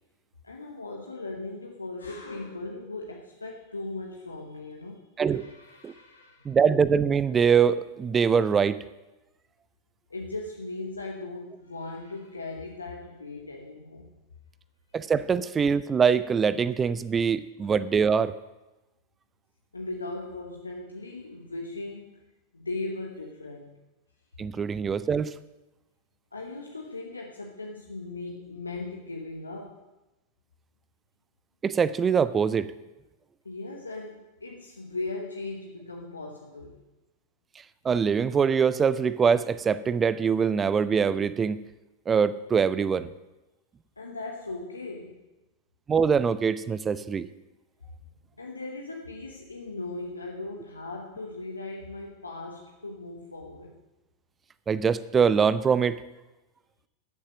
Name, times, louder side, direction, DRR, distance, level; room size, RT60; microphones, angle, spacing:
voice 1, 0.4-6.6 10.1-14.1 16.8-17.0 19.7-22.2 22.5-23.8 26.3-29.8 33.4-36.8 44.0-45.2 48.4-53.7, left 2 dB, 80° left, 1 dB, 1.1 m, -38 dB
voice 2, 6.4-8.8 14.9-18.3 24.4-25.3 31.6-32.7 37.8-41.6 42.1-43.1 45.9-47.3 54.7-56.0, right 6 dB, 20° right, 17 dB, 0.5 m, -23 dB
13.5 x 7.3 x 6.3 m, 1.0 s
figure-of-eight pair, 90°, 0 cm